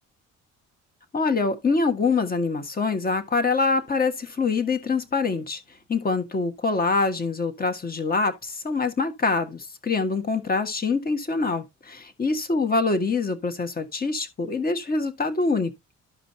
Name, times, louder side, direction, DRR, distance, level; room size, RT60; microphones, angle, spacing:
voice 1, 1.1-5.6 5.9-15.7, left 4 dB, 30° left, 1.5 m, -25 dB
13.0 x 5.1 x 2.8 m
cardioid pair, 90°, 30 cm